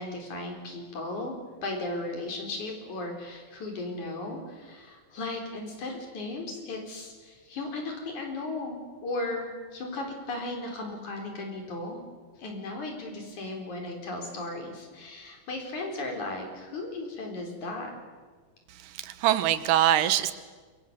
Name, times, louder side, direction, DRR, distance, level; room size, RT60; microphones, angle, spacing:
voice 1, 0.0-1.3 1.6-12.0 12.4-17.9, left 2 dB, 65° left, 2 dB, 5.5 m, -36 dB
voice 2, 18.8-20.3, right 12 dB, 90° right, 12 dB, 2.7 m, -24 dB
27.5 x 24.0 x 6.8 m, 1.5 s
omnidirectional pair, 3.7 m